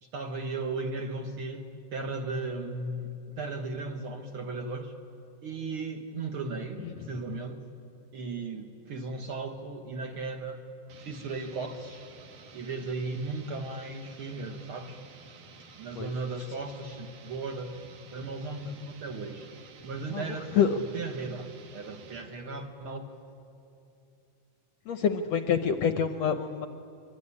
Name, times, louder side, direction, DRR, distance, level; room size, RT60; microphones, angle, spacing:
voice 1, 0.0-4.9 5.4-7.6 8.1-10.6 11.0-12.1 12.5-15.0 15.7-17.8 18.1-19.5 19.8-23.0 26.2-26.3, right 3 dB, 55° right, 5 dB, 1.7 m, -36 dB
sound 1, 10.9-22.3, right 5 dB, 70° right, 3.5 m, -52 dB
voice 2, 20.1-20.8 24.9-26.7, left 7 dB, 75° left, 8 dB, 1.5 m, -27 dB
25.0 x 24.0 x 9.8 m, 2.7 s
omnidirectional pair, 3.9 m